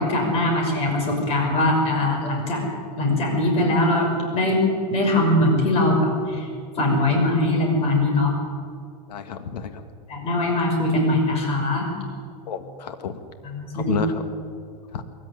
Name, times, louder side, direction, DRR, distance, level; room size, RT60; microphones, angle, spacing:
voice 1, 0.0-2.6 3.0-4.6 4.9-6.5 6.8-8.3 10.1-11.9 13.4-14.0, left 1 dB, 30° left, 1 dB, 5.9 m, -21 dB
voice 2, 9.1-9.8 12.5-13.2 13.7-14.2 14.9-15.0, left 8 dB, 90° left, 8 dB, 1.7 m, -30 dB
22.0 x 14.5 x 9.9 m, 2.2 s
supercardioid pair, 155°, 20 cm